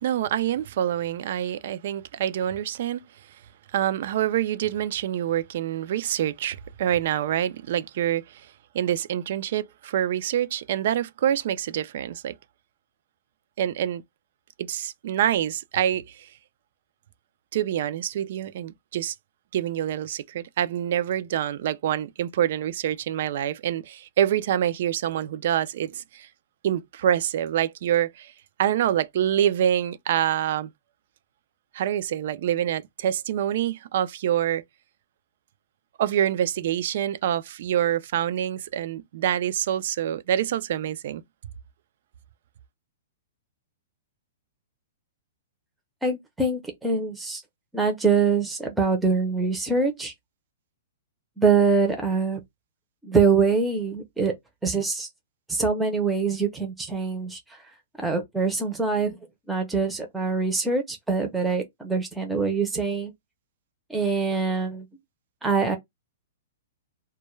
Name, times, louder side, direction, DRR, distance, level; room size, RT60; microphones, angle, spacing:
voice 1, 0.0-3.0 3.7-8.5 8.7-12.4 13.6-14.0 14.6-16.3 17.5-19.1 19.5-26.3 26.6-28.3 28.6-30.7 31.7-34.6 36.0-41.2, right 10 dB, 55° right, 0.3 m, -26 dB
voice 2, 46.0-47.4 47.7-50.1 51.4-52.4 53.0-54.3 54.6-55.1 55.5-57.4 58.0-59.2 59.5-63.1 63.9-64.9 65.4-65.8, right 4 dB, 5° right, 0.6 m, -24 dB
2.2 x 2.1 x 3.1 m
hypercardioid pair, 160°, 0 cm